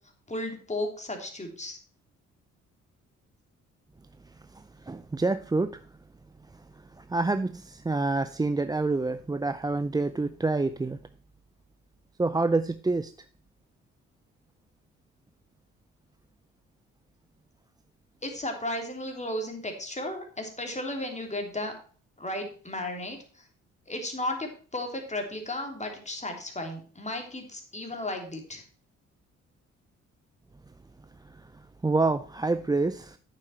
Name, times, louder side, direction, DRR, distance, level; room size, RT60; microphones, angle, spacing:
voice 1, 0.3-1.8 18.2-21.7 22.2-23.5 23.9-28.6, left 1 dB, 20° left, 3 dB, 3.3 m, -34 dB
voice 2, 4.5-5.8 7.0-11.0 12.2-13.1 31.8-33.2, right 3 dB, 10° right, 12 dB, 0.5 m, -27 dB
8.9 x 7.6 x 4.4 m, 0.42 s
hypercardioid pair, 50°, 33 cm